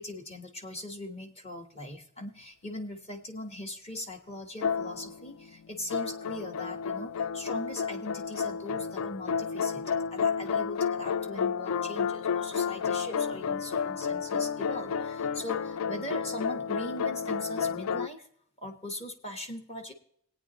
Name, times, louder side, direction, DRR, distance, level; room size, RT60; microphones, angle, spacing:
voice 1, 0.0-18.3 18.6-19.9, left 1 dB, 25° left, 4 dB, 1.2 m, -40 dB
sound 1, 4.6-5.4 5.9-18.1, left 6 dB, 70° left, 0.3 m, -31 dB
18.5 x 9.0 x 3.0 m, 0.66 s
head